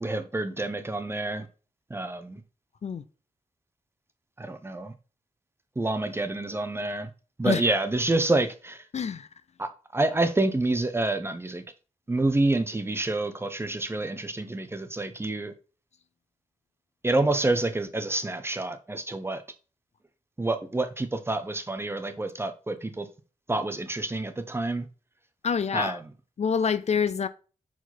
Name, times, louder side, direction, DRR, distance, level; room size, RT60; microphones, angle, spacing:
voice 1, 0.0-1.4 1.9-2.4 4.4-4.9 5.8-7.1 7.4-8.8 9.6-11.6 12.1-15.5 17.0-19.4 20.4-23.1 23.5-24.9 25.7-26.0, right 2 dB, 15° right, 0.8 m, -28 dB
voice 2, 25.4-26.0 26.4-27.3, left 6 dB, 55° left, 0.6 m, -26 dB
6.0 x 4.9 x 4.0 m
wide cardioid pair, 135°, 14 cm